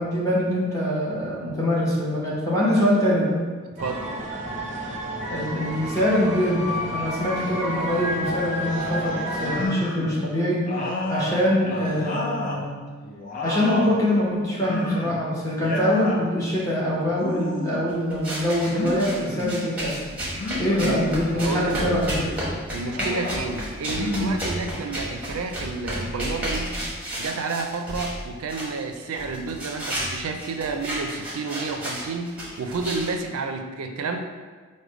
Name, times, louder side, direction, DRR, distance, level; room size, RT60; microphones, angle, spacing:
voice 1, 0.0-3.4 5.3-10.6 11.1-12.8 13.4-20.0 20.6-22.5, left 1 dB, 15° left, -7 dB, 1.1 m, -24 dB
sound 1, 3.8-9.7, equal, 35° right, 0.7 m, -30 dB
sound 2, 9.4-10.2 10.6-12.6 13.0-14.0 14.6-15.2 15.5-16.2 17.1-17.9 18.7-19.6 20.4-21.1 21.7-22.4 22.9-23.5 23.9-25.0, left 2 dB, 40° left, 0.5 m, -30 dB
sound 3, 18.1-28.2 28.5-33.1, equal, 5° right, 1.1 m, -32 dB
voice 2, 20.5-21.1 21.3-22.0 22.7-26.8 27.2-34.2, right 4 dB, 85° right, 6 dB, 0.4 m, -30 dB
5.0 x 2.2 x 4.7 m, 1.5 s
head